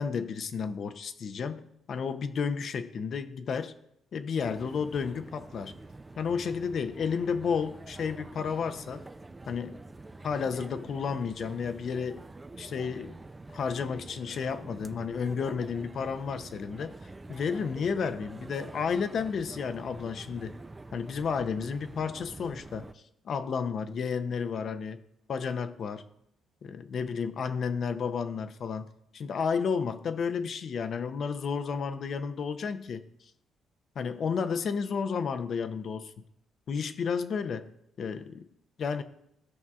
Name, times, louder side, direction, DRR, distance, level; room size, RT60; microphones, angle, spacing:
voice 1, 0.0-3.7 4.1-5.8 6.2-9.0 9.5-9.8 10.2-12.2 12.6-13.2 13.5-16.9 17.3-20.6 20.9-25.0 25.3-26.0 26.6-28.9 29.1-33.0 34.0-36.1 36.7-37.7 38.0-38.5 38.8-39.0, left 6 dB, 55° left, 0.6 m, -32 dB
sound 1, 4.4-22.9, right 2 dB, 20° right, 0.4 m, -46 dB
15.0 x 5.4 x 2.4 m
cardioid pair, 90°, 0 cm